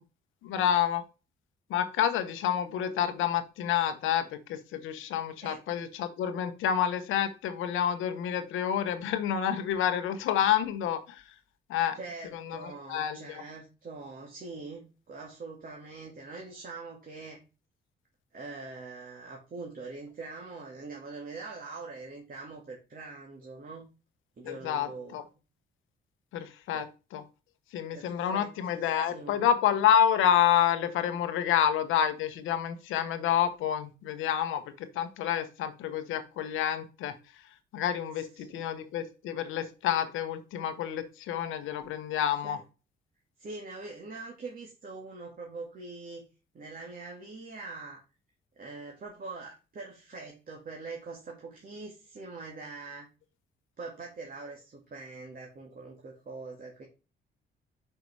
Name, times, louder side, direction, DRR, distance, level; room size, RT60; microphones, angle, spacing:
voice 1, 0.4-1.0 1.7-11.2 11.7-12.0 12.3-13.4 24.4-25.2 26.3-27.2 27.7-37.2 37.7-42.6, left 9 dB, 90° left, 9 dB, 1.1 m, -28 dB
voice 2, 11.9-17.4 18.3-23.9 24.4-25.2 26.7-26.9 27.9-29.4 38.1-38.7 42.4-42.6 43.4-46.3 46.5-48.0 48.6-53.1 53.8-56.8, right 3 dB, 45° right, -1 dB, 2.1 m, -43 dB
5.8 x 5.5 x 4.7 m, 0.32 s
cardioid pair, 90°, 20 cm